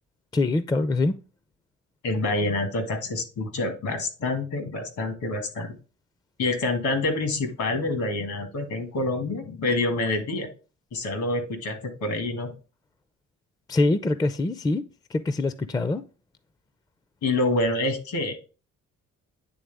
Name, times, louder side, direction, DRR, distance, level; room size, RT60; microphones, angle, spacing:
voice 1, 0.3-1.2 13.7-14.8 15.1-16.0, left 2 dB, 15° left, 0.4 m, -24 dB
voice 2, 2.0-5.8 6.4-10.5 10.9-12.5 17.2-18.3, left 2 dB, 75° left, 1.8 m, -27 dB
9.2 x 3.5 x 3.4 m
cardioid pair, 90°, 30 cm